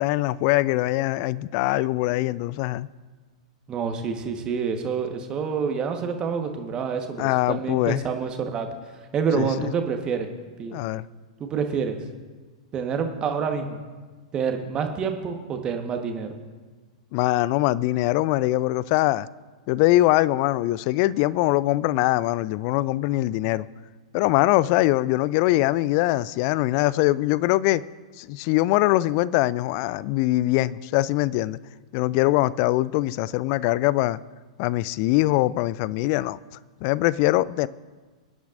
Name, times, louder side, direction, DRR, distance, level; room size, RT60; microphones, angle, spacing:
voice 1, 0.0-2.9 7.2-8.0 9.3-9.7 10.7-11.1 17.1-19.3 19.7-23.7 24.1-27.8 28.2-31.6 31.9-34.2 34.6-36.4 36.8-37.7, left 17 dB, 45° left, 0.4 m, -22 dB
voice 2, 3.7-8.7 9.1-10.3 10.6-10.8 11.4-12.0 12.7-13.8 14.3-16.3, right 6 dB, 25° right, 1.3 m, -27 dB
23.0 x 10.0 x 2.6 m
figure-of-eight pair, 100°, 3 cm